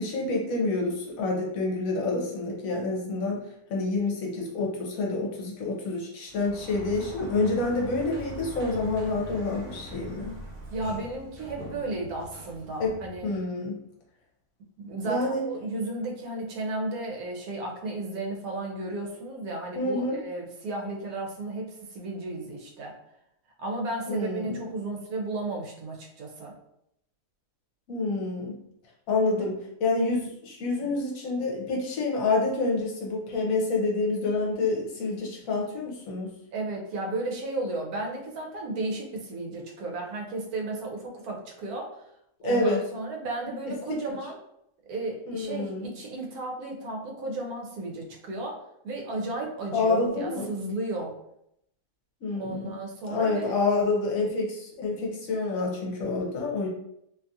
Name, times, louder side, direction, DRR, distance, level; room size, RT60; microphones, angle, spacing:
voice 1, 0.0-3.4 3.7-10.4 12.8-12.9 13.2-13.7 15.0-15.4 19.7-20.2 24.1-24.6 27.9-28.6 29.1-36.3 42.4-42.8 45.3-45.9 49.7-50.5 52.2-52.7 53.1-56.7, left 3 dB, 70° left, -1 dB, 1.1 m, -28 dB
Sliding door, 6.3-13.4, left 1 dB, 45° right, 0.6 m, -42 dB
voice 2, 10.7-13.3 14.8-23.0 23.6-26.5 29.4-29.5 36.5-41.9 42.4-44.4 44.9-51.2 52.3-53.5, right 2 dB, 75° right, 0 dB, 1.1 m, -34 dB
2.8 x 2.3 x 2.6 m, 0.76 s
omnidirectional pair, 1.6 m